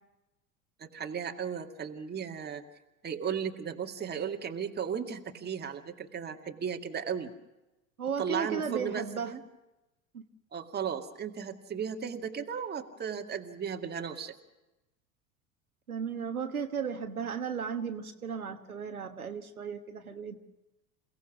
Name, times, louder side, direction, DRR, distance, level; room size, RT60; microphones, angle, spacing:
voice 1, 0.8-2.6 3.0-7.3 8.2-9.4 10.5-14.3, right 7 dB, 25° right, 4 dB, 2.1 m, -35 dB
voice 2, 8.0-9.3 10.1-10.2 15.9-20.4, right 6 dB, 85° right, 6 dB, 1.4 m, -35 dB
28.5 x 17.5 x 6.0 m, 0.98 s
figure-of-eight pair, 80°, 42 cm